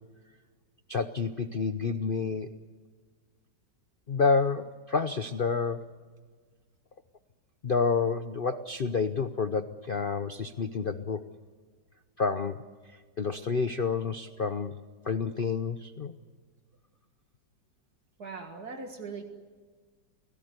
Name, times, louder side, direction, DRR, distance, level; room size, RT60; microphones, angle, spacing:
voice 1, 0.9-2.5 4.1-5.8 7.6-11.2 12.2-12.6 13.2-14.7 15.0-16.1, left 5 dB, 50° left, 10 dB, 0.6 m, -29 dB
voice 2, 18.2-19.2, right 4 dB, 55° right, 4 dB, 2.3 m, -40 dB
29.5 x 17.5 x 8.0 m, 1.5 s
omnidirectional pair, 2.0 m